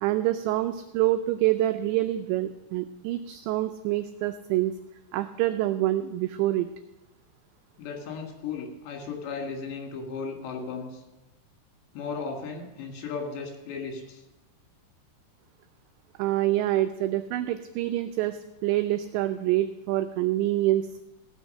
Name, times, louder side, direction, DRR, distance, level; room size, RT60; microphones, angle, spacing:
voice 1, 0.0-4.7 5.1-6.7 16.2-21.0, right 14 dB, 90° right, 9 dB, 2.5 m, -26 dB
voice 2, 7.8-11.0 11.9-14.2, left 5 dB, 65° left, 2 dB, 3.8 m, -35 dB
16.5 x 6.5 x 6.4 m, 0.98 s
omnidirectional pair, 5.7 m